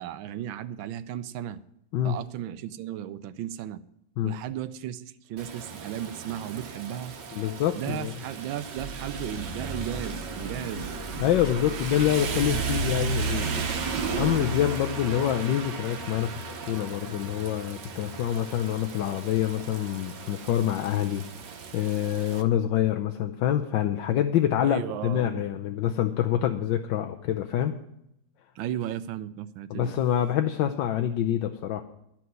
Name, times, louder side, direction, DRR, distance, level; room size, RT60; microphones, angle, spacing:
voice 1, 0.0-1.6 2.0-3.8 4.2-7.1 7.8-10.9 24.6-25.5 28.6-29.9, right 11 dB, 75° right, 14 dB, 1.4 m, -35 dB
Rain, 5.4-22.4, right 4 dB, 60° right, 1.6 m, -34 dB
voice 2, 7.3-8.2 11.2-13.6 14.1-21.2 21.7-27.7 29.7-31.8, left 11 dB, 70° left, 5 dB, 1.3 m, -26 dB
sound 1, 8.7-14.4, left 1 dB, 35° left, 1.3 m, -40 dB
12.5 x 5.9 x 9.3 m, 0.78 s
omnidirectional pair, 2.2 m